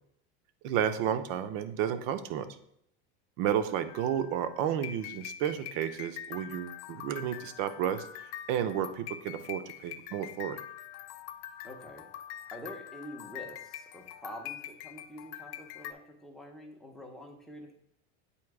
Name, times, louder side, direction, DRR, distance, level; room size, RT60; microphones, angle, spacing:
voice 1, 0.6-2.5 3.4-10.6, right 9 dB, 50° right, 11 dB, 0.6 m, -32 dB
sound 1, 3.9-15.9, left 11 dB, 80° left, 0.5 m, -44 dB
voice 2, 11.6-12.1 12.5-17.7, equal, ahead, 0 dB, 0.6 m, -46 dB
8.5 x 2.8 x 4.6 m, 0.73 s
cardioid pair, 165°, 34 cm